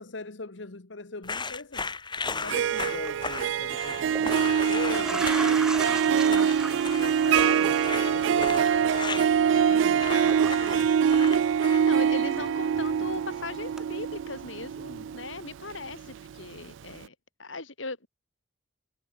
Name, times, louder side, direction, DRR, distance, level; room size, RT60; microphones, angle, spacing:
voice 1, 0.0-1.9 2.2-11.0 14.8-15.2, left 3 dB, 65° left, 1.4 m, -40 dB
sound 1, 1.2-12.0, left 4 dB, 25° left, 3.6 m, -36 dB
Harp, 2.3-16.3, right 8 dB, 70° right, 0.3 m, -24 dB
sound 2, 2.9-3.1 3.9-12.0 12.3-13.3 13.8-13.9, right 1 dB, 5° right, 4.9 m, -39 dB
voice 2, 11.9-18.1, left 3 dB, 85° left, 6.9 m, -38 dB
head